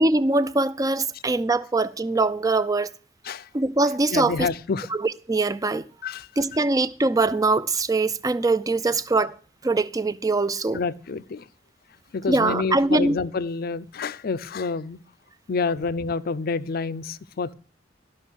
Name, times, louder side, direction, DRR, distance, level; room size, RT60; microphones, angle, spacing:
voice 1, 0.0-2.9 3.5-4.5 4.9-5.9 6.4-9.3 9.6-10.8 12.3-13.2, right 2 dB, 20° right, 0.4 m, -22 dB
voice 2, 4.1-4.9 6.0-6.3 10.7-11.5 12.1-15.0 15.5-17.5, left 4 dB, 55° left, 0.5 m, -28 dB
12.5 x 6.0 x 6.3 m
head